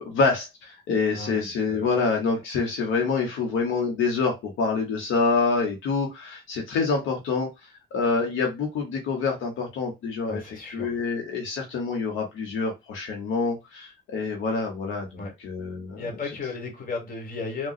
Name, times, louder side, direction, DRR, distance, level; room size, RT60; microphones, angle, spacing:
voice 1, 0.0-16.1, left 4 dB, 80° left, 1.0 m, -26 dB
voice 2, 1.1-1.9 10.3-11.0 15.2-15.3 16.0-17.7, left 4 dB, 45° left, 1.5 m, -34 dB
3.7 x 2.3 x 2.3 m
cardioid pair, 90°, 20 cm